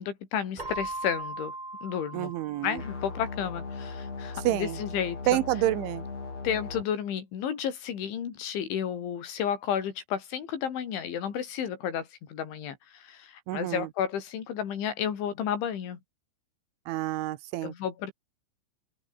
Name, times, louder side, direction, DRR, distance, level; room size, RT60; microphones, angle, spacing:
voice 1, 0.0-1.5 1.8-2.3 2.6-5.4 6.4-16.0 17.6-18.1, left 8 dB, 75° left, 5.7 m, -32 dB
Keyboard (musical), 0.6-3.3, right 2 dB, 25° right, 1.0 m, -39 dB
voice 2, 2.1-2.8 4.5-4.8 5.3-6.1 13.5-13.9 16.9-17.7, right 15 dB, 80° right, 3.5 m, -28 dB
sound 1, 2.8-6.8, left 4 dB, 35° left, 5.9 m, -38 dB
open air
omnidirectional pair, 5.4 m